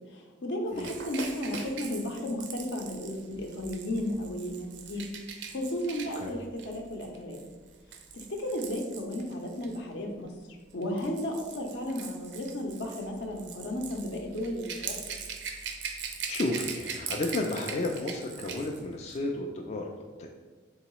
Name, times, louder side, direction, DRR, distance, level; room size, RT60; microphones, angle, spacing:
voice 1, 0.1-5.1 5.5-7.4 8.1-10.3 10.7-15.0, left 1 dB, 70° left, 2 dB, 0.6 m, -34 dB
Rattle / Rattle (instrument), 0.7-9.8 10.7-18.8 19.1-19.3, right 6 dB, 75° right, 0.5 m, -41 dB
voice 2, 16.3-20.3, left 2 dB, 40° left, 1 dB, 0.3 m, -32 dB
3.8 x 3.6 x 3.0 m, 1.4 s
head